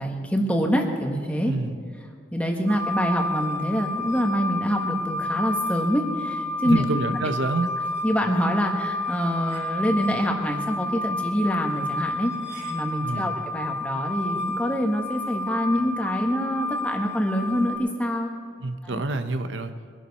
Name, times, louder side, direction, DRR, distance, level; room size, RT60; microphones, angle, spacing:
voice 1, 0.0-1.5 2.3-6.8 8.0-12.3 12.7-18.3 18.8-19.0, equal, 5° left, 1 dB, 1.5 m, -25 dB
voice 2, 1.5-1.8 6.6-7.7 13.0-13.3 18.6-19.7, right 3 dB, 80° right, 9 dB, 0.8 m, -27 dB
sound 1, 2.7-17.8, left 2 dB, 45° right, 3.1 m, -30 dB
23.0 x 11.5 x 4.2 m, 2.1 s
head